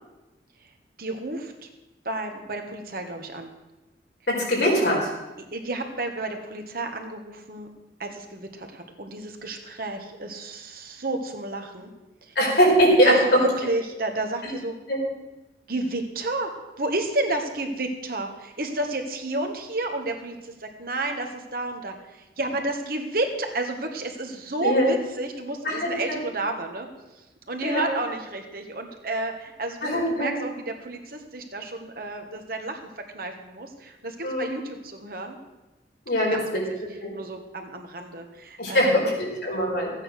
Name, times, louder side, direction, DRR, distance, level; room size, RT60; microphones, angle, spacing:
voice 1, 1.0-1.7 2.0-3.5 5.5-7.7 8.0-11.9 12.2-12.3 13.0-14.7 15.7-16.5 16.8-26.9 27.5-35.4 36.3-36.4 37.1-39.1, right 2 dB, 55° right, 4 dB, 1.6 m, -31 dB
voice 2, 4.3-5.0 12.3-13.4 14.4-14.5 14.9-15.0 24.6-24.9 25.6-25.9 27.6-27.9 29.8-30.3 34.2-34.5 36.1-36.6 37.0-37.1 38.6-39.9, equal, 65° left, -3 dB, 4.6 m, -21 dB
14.0 x 9.0 x 6.5 m, 1.1 s
head